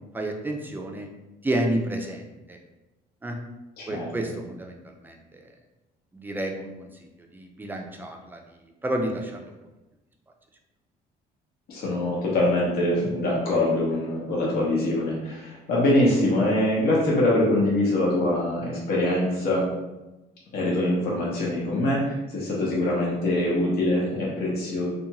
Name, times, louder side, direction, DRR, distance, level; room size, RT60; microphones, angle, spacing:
voice 1, 0.1-1.1 1.4-2.6 3.2-3.4 3.9-5.5 6.1-6.9 7.3-8.4 8.8-9.5, right 1 dB, 10° right, 2 dB, 0.4 m, -30 dB
voice 2, 11.7-19.7 20.5-24.9, left 1 dB, 65° left, -5 dB, 0.8 m, -24 dB
2.5 x 2.2 x 2.9 m, 1.0 s
cardioid pair, 110°, 17 cm